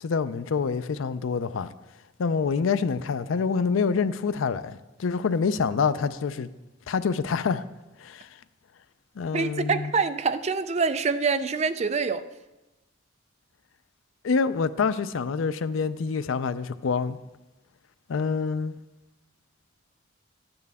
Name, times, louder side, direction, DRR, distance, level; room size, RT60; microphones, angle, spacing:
voice 1, 0.0-1.7 2.2-6.5 6.9-7.6 8.0-8.3 9.2-9.9 14.2-17.2 18.1-18.7, left 5 dB, 85° left, 0.4 m, -26 dB
voice 2, 9.3-12.3, right 5 dB, 35° right, 0.4 m, -25 dB
12.0 x 8.8 x 3.5 m
head